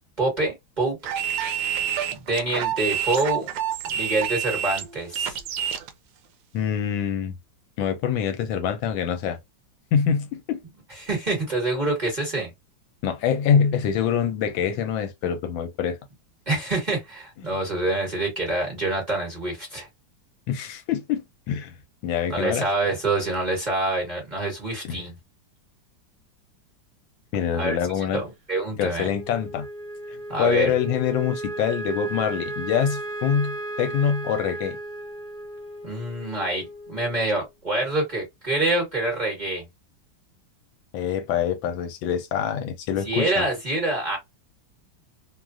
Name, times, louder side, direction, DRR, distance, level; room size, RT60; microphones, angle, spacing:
voice 1, 0.2-1.0 2.1-3.5 3.8-5.4 11.0-12.5 16.5-19.9 22.3-25.1 27.5-27.8 28.1-29.0 30.3-30.7 35.8-39.6 43.0-44.2, right 2 dB, 25° right, 1.2 m, -26 dB
sound 1, 1.0-5.9, right 9 dB, 75° right, 1.2 m, -28 dB
voice 2, 6.5-7.3 7.8-9.4 9.9-10.6 13.0-16.0 17.4-17.5 20.5-21.7 22.0-22.7 24.8-25.0 27.3-28.2 28.8-29.7 30.1-34.8 40.9-43.4, left 8 dB, 80° left, 1.3 m, -25 dB
Wind instrument woodwind instrument, 29.0-37.4, right 1 dB, 50° right, 0.5 m, -35 dB
3.2 x 2.3 x 2.4 m
omnidirectional pair, 2.2 m